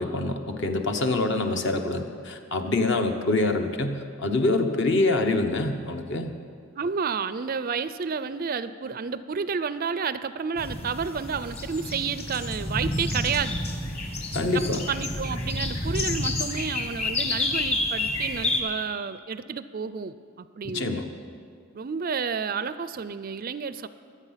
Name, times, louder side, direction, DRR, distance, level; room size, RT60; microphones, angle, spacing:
voice 1, 0.0-6.3 14.3-14.8 20.6-21.1, left 2 dB, 55° left, 5 dB, 1.0 m, -25 dB
voice 2, 6.8-13.6 14.5-21.0 21.7-23.9, right 6 dB, 40° right, 14 dB, 0.4 m, -30 dB
sound 1, 10.6-18.6, left 2 dB, 30° left, 1.4 m, -29 dB
23.0 x 8.4 x 5.7 m, 2.2 s
head